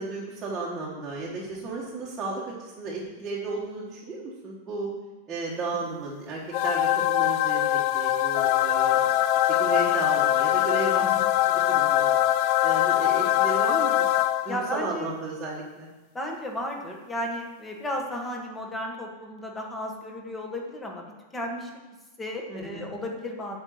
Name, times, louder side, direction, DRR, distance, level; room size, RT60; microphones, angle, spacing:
voice 1, 0.0-4.9 5.3-11.1 11.4-12.2 12.6-14.1 14.4-15.9 22.5-22.9, right 3 dB, 15° right, -6 dB, 1.4 m, -34 dB
sound 1, 6.5-14.8, left 13 dB, 35° left, 0.3 m, -23 dB
voice 2, 14.5-15.1 16.1-21.1 21.3-21.7 22.2-23.6, left 1 dB, 10° left, 1 dB, 1.3 m, -34 dB
8.9 x 5.4 x 7.9 m, 1.1 s
supercardioid pair, 175°, 0 cm